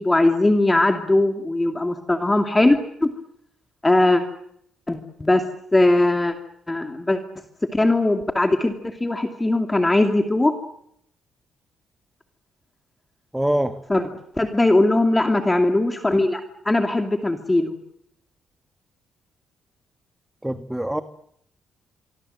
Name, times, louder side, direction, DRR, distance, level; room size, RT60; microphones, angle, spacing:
voice 1, 0.0-3.1 3.8-4.2 4.9-5.4 5.7-6.4 6.7-7.2 7.7-10.6 13.9-14.0 14.4-17.8, left 2 dB, 15° left, 6 dB, 2.5 m, -20 dB
voice 2, 13.3-13.8 20.4-21.0, right 1 dB, 5° right, 10 dB, 1.4 m, -24 dB
25.0 x 24.5 x 7.9 m, 0.73 s
cardioid pair, 90°, 0 cm